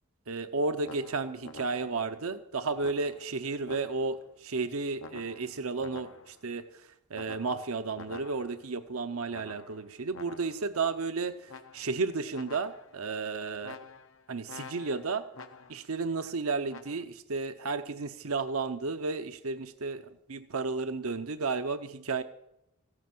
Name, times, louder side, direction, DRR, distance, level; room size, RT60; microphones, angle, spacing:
voice 1, 0.3-13.8 14.3-15.2 15.7-22.2, right 4 dB, 75° right, 9 dB, 0.8 m, -33 dB
sound 1, 0.8-2.1 2.8-4.3 5.0-6.5 7.1-8.7 9.3-10.7 11.5-12.1 12.3-13.1 13.6-15.9 16.7-17.0, left 4 dB, 60° left, 0.8 m, -48 dB
15.0 x 9.9 x 7.7 m, 0.82 s
head